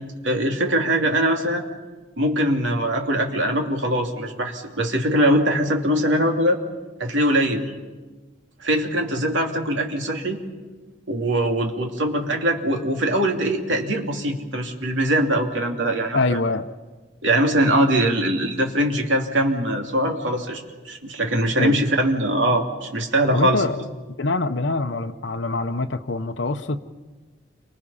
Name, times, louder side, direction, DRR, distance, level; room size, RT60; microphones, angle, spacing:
voice 1, 0.2-1.6 2.2-6.6 7.0-7.7 8.6-10.4 11.1-16.4 17.2-23.6, right 1 dB, 75° right, 3 dB, 2.8 m, -22 dB
voice 2, 16.1-16.7 21.6-21.8 23.3-23.8 24.2-26.9, left 3 dB, 70° left, 6 dB, 0.9 m, -24 dB
29.5 x 24.5 x 5.7 m, 1.3 s
head